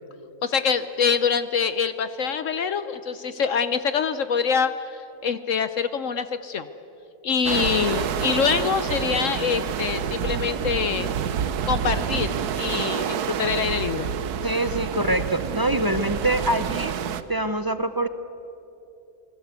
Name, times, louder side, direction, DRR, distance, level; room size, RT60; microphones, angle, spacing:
voice 1, 0.4-6.7 7.2-11.1 11.7-14.1, left 6 dB, 60° left, 12 dB, 1.0 m, -25 dB
sound 1, 7.4-17.2, right 8 dB, 85° right, 1.4 m, -28 dB
voice 2, 14.4-16.9 17.3-18.1, right 1 dB, 35° right, 10 dB, 0.3 m, -24 dB
28.5 x 20.5 x 8.2 m, 2.9 s
omnidirectional pair, 1.6 m